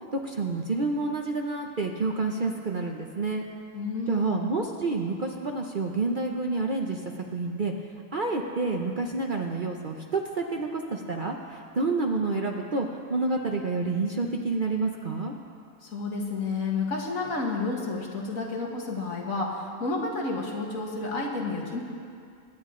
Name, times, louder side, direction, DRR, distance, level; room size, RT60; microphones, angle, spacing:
voice 1, 0.1-3.4 4.1-7.7 8.1-15.3, right 3 dB, 40° right, 2 dB, 0.8 m, -29 dB
voice 2, 3.7-4.4 15.8-21.8, left 3 dB, 65° left, -1 dB, 2.0 m, -30 dB
23.5 x 10.0 x 3.8 m, 2.3 s
omnidirectional pair, 1.5 m